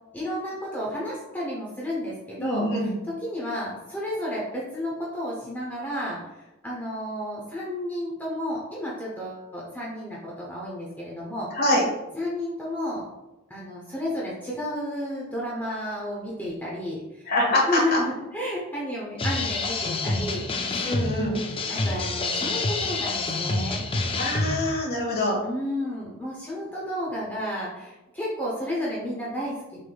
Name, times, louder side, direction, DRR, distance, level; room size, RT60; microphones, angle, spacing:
voice 1, 0.1-6.2 6.6-11.5 12.2-13.0 13.5-17.2 17.7-20.9 21.2-23.8 25.4-29.8, left 1 dB, 10° left, -5 dB, 0.8 m, -32 dB
voice 2, 2.4-2.9 11.5-11.8 17.2-18.0 20.8-21.4 24.2-25.4, left 1 dB, 45° left, -3 dB, 1.6 m, -24 dB
sound 1, 19.2-24.7, left 3 dB, 25° left, 0.4 m, -27 dB
6.3 x 3.5 x 2.3 m, 1.0 s
head